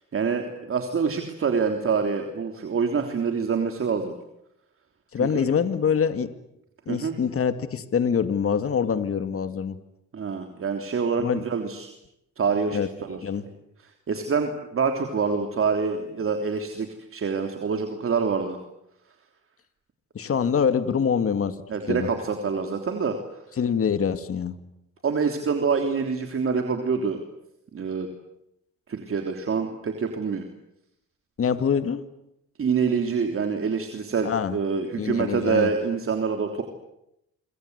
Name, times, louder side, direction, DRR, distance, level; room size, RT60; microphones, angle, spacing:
voice 1, 0.1-4.1 5.3-5.5 6.9-7.1 10.1-11.9 12.4-13.2 13.8-18.6 20.4-20.5 21.7-23.2 25.0-27.2 27.7-28.1 28.9-30.4 32.6-36.6, right 5 dB, 45° right, 4 dB, 3.3 m, -26 dB
voice 2, 5.1-6.3 6.9-9.8 11.2-11.4 12.7-12.9 13.2-13.4 20.1-21.6 21.9-22.1 23.6-24.6 31.4-32.0 34.2-34.6 35.0-35.7, left 7 dB, 50° left, 10 dB, 2.2 m, -24 dB
27.0 x 24.5 x 8.2 m, 0.81 s
cardioid pair, 90°, 30 cm